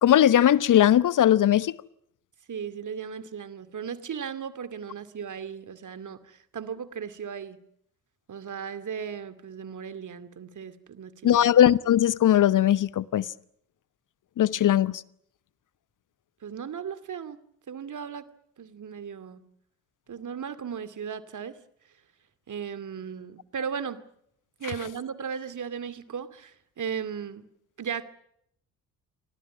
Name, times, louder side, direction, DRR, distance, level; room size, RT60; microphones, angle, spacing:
voice 1, 0.0-1.7 11.2-13.2 14.4-14.9, left 11 dB, 40° left, 1.0 m, -19 dB
voice 2, 2.5-7.6 8.3-11.5 16.4-17.4 17.7-18.3 18.6-19.4 20.1-21.6 22.5-24.0 24.6-27.5 27.8-28.0, right 7 dB, 40° right, 2.5 m, -36 dB
30.0 x 25.0 x 6.2 m
figure-of-eight pair, 45°, 48 cm